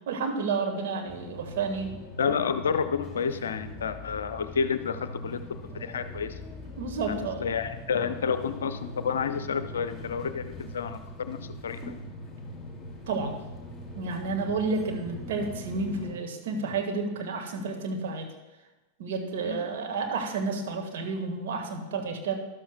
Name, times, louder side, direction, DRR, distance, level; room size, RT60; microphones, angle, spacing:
voice 1, 0.1-1.9 6.8-7.4 13.1-13.4 14.0-18.3 19.0-22.3, right 4 dB, 55° right, 2 dB, 1.7 m, -31 dB
sound 1, 1.1-16.1, left 1 dB, 10° left, 2.5 m, -42 dB
voice 2, 2.2-5.4 5.7-6.4 7.1-11.8 19.4-19.7, left 6 dB, 65° left, 11 dB, 0.6 m, -30 dB
13.0 x 12.0 x 2.3 m, 1.1 s
figure-of-eight pair, 90°, 0 cm